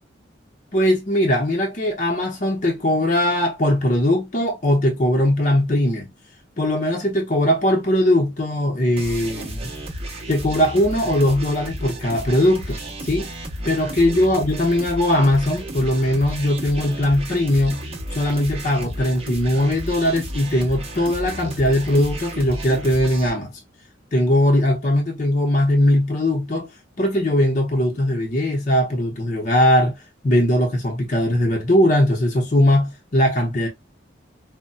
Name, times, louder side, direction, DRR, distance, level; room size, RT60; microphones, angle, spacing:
voice 1, 0.7-6.1 6.6-9.7 10.3-13.3 13.6-17.8 18.1-23.6 24.1-26.7 27.0-30.0 30.2-33.7, left 1 dB, 40° left, 0.7 m, -20 dB
sound 1, 9.0-23.3, right 1 dB, 30° right, 0.7 m, -33 dB
4.0 x 2.1 x 2.2 m
head